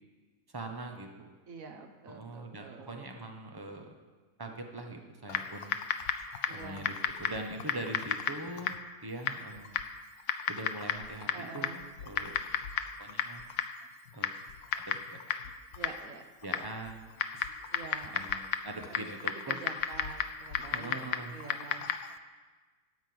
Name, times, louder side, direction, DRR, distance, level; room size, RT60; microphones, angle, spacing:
voice 1, 0.5-1.3 2.1-4.0 4.4-5.8 6.5-9.8 10.5-11.7 12.0-12.6 13.0-13.4 14.1-14.3 14.7-15.2 16.4-17.1 17.3-17.5 18.1-19.6 20.7-21.4, right 2 dB, 20° right, 3 dB, 0.9 m, -42 dB
voice 2, 1.5-3.0 6.5-6.9 11.3-11.9 15.7-16.2 17.7-18.3 18.9-19.1 19.5-21.9, right 5 dB, 65° right, 5 dB, 1.4 m, -47 dB
Typing, 5.3-22.2, left 9 dB, 80° left, 1.1 m, -35 dB
12.5 x 5.2 x 7.8 m, 1.4 s
omnidirectional pair, 1.6 m